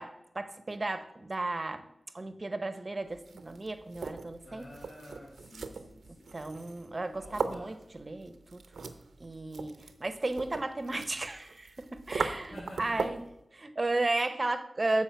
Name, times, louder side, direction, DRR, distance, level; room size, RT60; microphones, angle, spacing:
voice 1, 0.0-1.9 2.1-4.7 6.3-8.6 9.2-13.2 13.5-15.0, right 2 dB, 40° right, 11 dB, 0.7 m, -34 dB
sound 1, 3.1-13.3, right 4 dB, 85° right, 0.6 m, -40 dB
voice 2, 4.4-6.3 7.1-7.8 12.5-13.1, left 1 dB, 70° left, -4 dB, 1.9 m, -49 dB
7.2 x 4.7 x 5.7 m, 0.86 s
cardioid pair, 45°, 0 cm